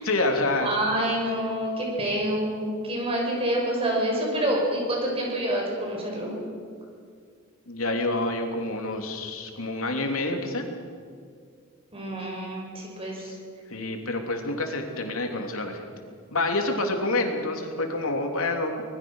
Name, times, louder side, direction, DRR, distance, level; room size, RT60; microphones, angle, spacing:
voice 1, 0.0-0.7 7.7-10.7 13.2-13.3 13.7-15.9 16.3-18.8, left 2 dB, 85° left, 3 dB, 3.2 m, -27 dB
voice 2, 0.6-6.3 11.9-13.3, right 1 dB, 30° right, -1 dB, 6.8 m, -27 dB
25.5 x 21.0 x 6.4 m, 2.1 s
head